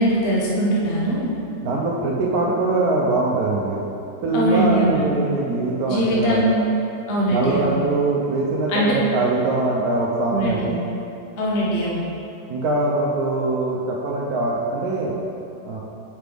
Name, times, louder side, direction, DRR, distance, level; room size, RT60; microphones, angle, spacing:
voice 1, 0.0-1.3 4.3-5.1 5.9-6.6 7.1-7.7 8.7-8.9 10.3-10.7 11.4-12.1, equal, 40° left, -5 dB, 1.1 m, -21 dB
voice 2, 1.6-3.8 4.2-6.4 7.3-10.8 12.5-15.1 15.6-15.8, right 2 dB, 70° right, -4 dB, 1.2 m, -22 dB
7.8 x 5.9 x 3.4 m, 2.7 s
omnidirectional pair, 1.8 m